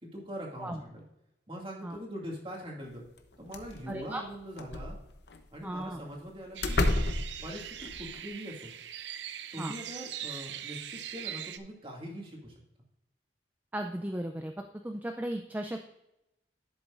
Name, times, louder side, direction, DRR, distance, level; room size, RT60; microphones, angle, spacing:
voice 1, 0.0-1.0 1.5-3.0 3.4-5.0 5.5-6.8 7.4-8.7 9.5-12.6, equal, 30° right, -1 dB, 2.3 m, -42 dB
sound 1, 3.2-3.3 3.5-4.0 4.5-5.4 6.1-6.2 6.6-8.2, left 2 dB, 65° left, 0.9 m, -30 dB
voice 2, 3.9-4.2 5.6-6.0 9.6-9.7 13.7-14.5 14.8-15.8, right 1 dB, 10° right, 4 dB, 0.4 m, -35 dB
sound 2, 6.5-11.6, right 10 dB, 75° right, 0.5 m, -41 dB
11.0 x 7.9 x 2.5 m, 0.86 s
head